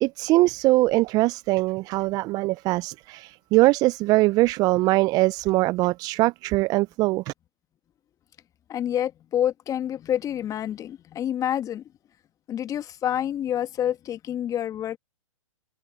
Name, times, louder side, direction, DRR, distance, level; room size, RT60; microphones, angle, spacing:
voice 1, 0.0-7.3, right 20 dB, 20° right, 0.5 m, -22 dB
voice 2, 8.7-11.8 12.5-15.0, left 10 dB, 20° left, 1.8 m, -28 dB
figure-of-eight pair, 125°, 18 cm